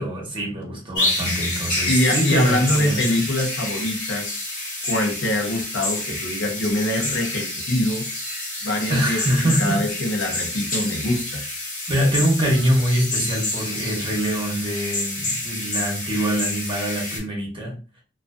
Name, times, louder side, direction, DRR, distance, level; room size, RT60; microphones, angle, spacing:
voice 1, 0.0-3.2 8.9-9.8 11.9-17.8, right 1 dB, 25° right, 0.9 m, -24 dB
sound 1, 1.0-17.2, left 2 dB, 45° left, 1.3 m, -28 dB
voice 2, 1.9-4.5 4.9-8.1 8.6-11.4, left 1 dB, 85° left, 0.7 m, -24 dB
2.5 x 2.4 x 2.3 m
head